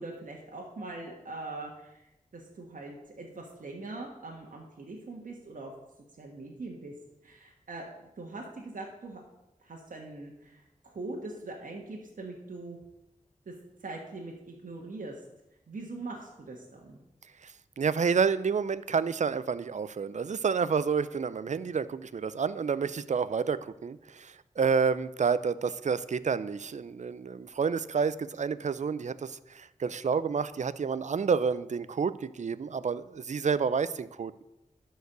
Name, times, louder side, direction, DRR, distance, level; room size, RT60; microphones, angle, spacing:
voice 1, 0.0-5.7 6.2-6.9 7.2-7.8 8.2-9.2 9.6-12.8 13.5-13.6 13.8-15.2 15.7-17.0, right 2 dB, 80° right, -1 dB, 1.4 m, -42 dB
voice 2, 17.4-34.4, right 5 dB, 60° right, 16 dB, 0.5 m, -29 dB
11.0 x 4.7 x 6.8 m, 0.91 s
wide cardioid pair, 55°, 14 cm